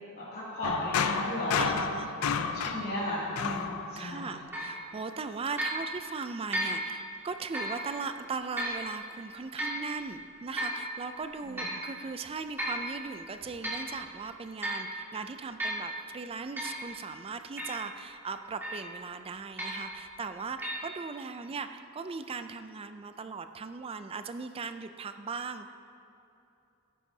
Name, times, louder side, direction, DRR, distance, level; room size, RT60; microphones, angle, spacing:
voice 1, 0.1-1.7 2.5-4.3 11.4-11.7, left 1 dB, 45° left, -10 dB, 2.5 m, -34 dB
sound 1, 0.6-4.4, left 6 dB, 80° left, 0.5 m, -32 dB
voice 2, 1.6-2.1 4.0-25.7, right 4 dB, 25° right, 9 dB, 0.4 m, -38 dB
sound 2, 4.5-4.8 5.6-5.8 6.5-6.8 7.5-7.8 8.6-8.8 9.6-9.8 10.6-10.8 11.6-11.8 12.6-12.8 13.4-13.9 14.6-14.9 15.6-15.9 16.6-16.8 17.6-17.8 18.6-18.9 19.6-19.9 20.6-20.8, right 1 dB, 10° right, 2.1 m, -34 dB
14.0 x 11.0 x 2.8 m, 2.8 s
head